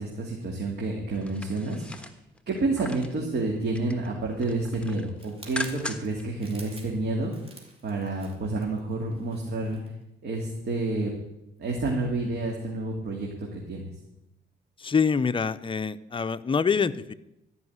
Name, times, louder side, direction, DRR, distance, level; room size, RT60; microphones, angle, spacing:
voice 1, 0.0-1.8 2.5-7.3 7.8-9.8 10.2-11.1 11.6-13.9, right 2 dB, 55° right, -1 dB, 2.5 m, -29 dB
sound 1, 1.1-3.2 3.6-4.1 4.4-6.2 6.6-6.7, left 2 dB, 5° left, 1.3 m, -39 dB
sound 2, 5.2-9.9 10.3-10.5, right 2 dB, 30° right, 3.3 m, -51 dB
voice 2, 14.8-17.1, left 6 dB, 25° left, 12 dB, 0.6 m, -25 dB
13.5 x 5.7 x 9.4 m, 0.88 s
cardioid pair, 90°, 20 cm